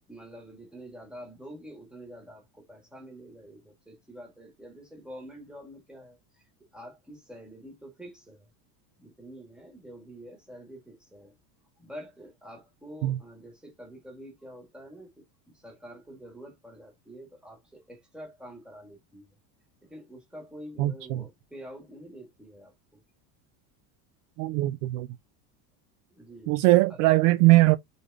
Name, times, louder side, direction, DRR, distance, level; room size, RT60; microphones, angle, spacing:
voice 1, 0.1-6.4 6.7-8.5 9.0-11.3 11.8-19.3 19.8-22.7 26.1-26.5 26.9-27.0, equal, ahead, 1.6 m, -47 dB
voice 2, 20.8-21.2 24.4-25.1 26.5-27.8, right 19 dB, 55° right, 0.5 m, -21 dB
4.1 x 3.4 x 3.5 m
cardioid pair, 170°, 48 cm